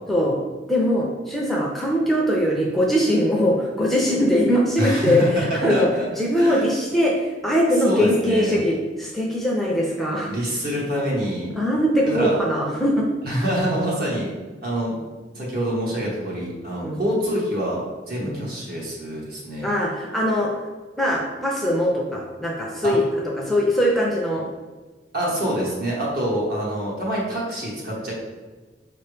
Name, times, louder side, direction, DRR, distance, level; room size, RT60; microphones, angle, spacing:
voice 1, 0.7-5.9 6.2-10.3 11.6-13.1 16.8-17.0 18.2-18.5 19.6-20.5 21.0-24.4, equal, ahead, -3 dB, 0.5 m, -21 dB
voice 2, 4.8-6.0 6.4-6.7 7.8-8.6 10.3-11.5 12.0-12.3 13.2-14.3 14.6-14.9 15.3-19.7 22.8-22.9 25.1-28.1, equal, 55° right, -4 dB, 1.4 m, -26 dB
5.1 x 2.9 x 3.3 m, 1.3 s
head